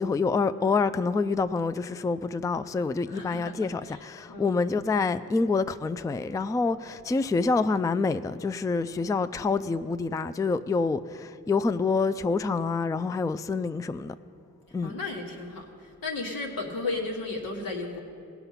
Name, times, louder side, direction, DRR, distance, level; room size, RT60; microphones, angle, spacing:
voice 1, 0.0-14.1 14.7-14.9, left 4 dB, 10° left, 0.3 m, -27 dB
voice 2, 3.1-3.5 3.9-4.0 4.3-4.5 14.8-18.0, left 3 dB, 90° left, 1.6 m, -34 dB
17.5 x 5.9 x 5.7 m
cardioid pair, 50°, 34 cm